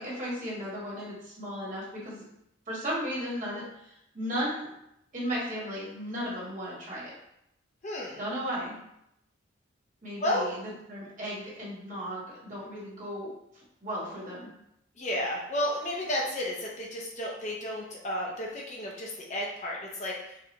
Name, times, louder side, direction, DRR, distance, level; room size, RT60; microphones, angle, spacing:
voice 1, 0.0-2.2 2.7-3.6 4.1-4.7 5.1-7.1 8.2-8.8 10.0-10.6 10.9-13.3 13.8-14.5, equal, 40° right, -6 dB, 1.4 m, -35 dB
voice 2, 7.8-8.2 10.2-10.5 15.0-20.4, left 1 dB, 40° left, -2 dB, 0.6 m, -32 dB
4.8 x 2.3 x 2.9 m, 0.80 s
head